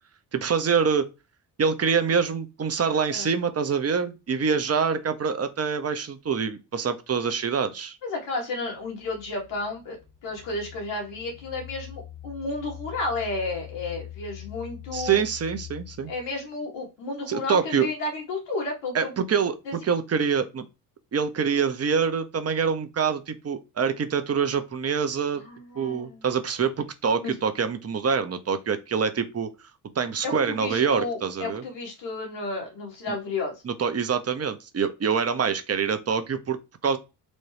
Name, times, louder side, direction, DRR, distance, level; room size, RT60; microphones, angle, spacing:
voice 1, 0.3-1.1 1.6-8.0 14.9-16.1 17.3-17.9 18.9-20.7 21.1-25.4 25.8-29.5 29.9-31.6 33.1-33.2 33.6-37.0, right 6 dB, 35° right, 0.8 m, -25 dB
voice 2, 8.0-10.0 10.2-15.2 16.1-19.1 19.7-19.8 25.3-26.3 27.2-27.3 30.2-33.6, left 2 dB, 80° left, 1.9 m, -32 dB
sound 1, 8.6-16.5, left 12 dB, 20° left, 1.0 m, -43 dB
4.1 x 2.3 x 3.3 m
supercardioid pair, 60°, 43 cm